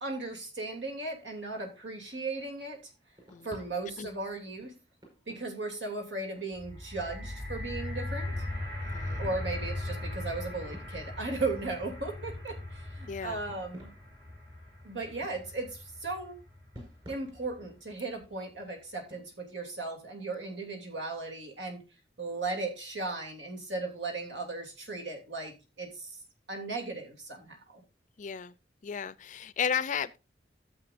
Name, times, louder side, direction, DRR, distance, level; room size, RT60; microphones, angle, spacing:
voice 1, 0.0-2.8 3.4-4.7 5.3-8.4 9.2-13.9 14.8-16.4 17.1-21.8 22.2-26.2 26.5-27.8, right 3 dB, 80° right, 2.8 m, -36 dB
sound 1, 2.1-8.3 8.7-8.8 9.2-12.7 13.1-20.5, equal, 30° right, 5.1 m, -56 dB
sound 2, 6.5-16.8 17.5-17.6, left 1 dB, 65° right, 6.6 m, -39 dB
voice 2, 8.9-9.2 13.1-13.4 28.2-28.5 28.8-30.2, left 7 dB, 45° left, 0.4 m, -34 dB
13.5 x 7.6 x 2.5 m
head